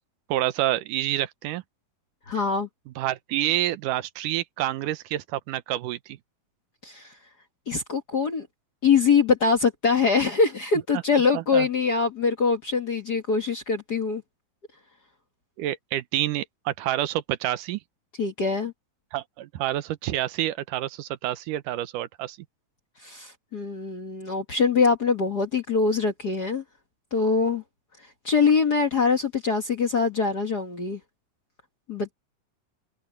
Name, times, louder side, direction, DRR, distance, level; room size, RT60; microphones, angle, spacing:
voice 1, 0.3-1.6 3.0-6.2 11.3-11.7 15.6-17.8 19.1-22.4, right 14 dB, 75° right, 2.2 m, -28 dB
voice 2, 2.3-2.7 6.8-7.1 7.7-8.5 8.8-14.2 18.2-18.7 23.0-26.6 27.1-27.6 28.2-31.0 31.9-32.1, left 5 dB, 45° left, 1.3 m, -23 dB
omnidirectional pair, 4.1 m